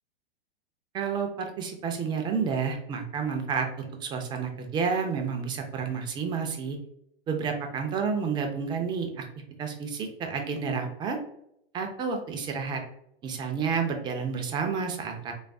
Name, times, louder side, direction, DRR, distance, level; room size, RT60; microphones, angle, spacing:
voice 1, 0.9-6.8 7.3-9.3 9.6-11.2 11.7-12.8 13.2-15.3, right 5 dB, 15° right, 3 dB, 0.4 m, -30 dB
3.2 x 2.3 x 2.5 m, 0.75 s
figure-of-eight pair, 100°, 30 cm